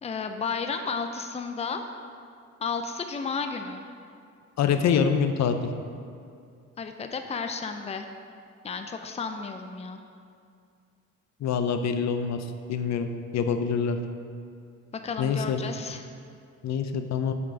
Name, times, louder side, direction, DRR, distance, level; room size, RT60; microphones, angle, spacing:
voice 1, 0.0-1.8 2.6-3.8 6.8-8.1 8.6-10.0 15.0-16.0, left 5 dB, 20° left, 6 dB, 0.5 m, -32 dB
voice 2, 4.6-5.7 11.4-14.0 15.2-15.6 16.6-17.3, left 6 dB, 65° left, 7 dB, 0.7 m, -26 dB
7.3 x 6.0 x 5.1 m, 2.3 s
cardioid pair, 90°, 30 cm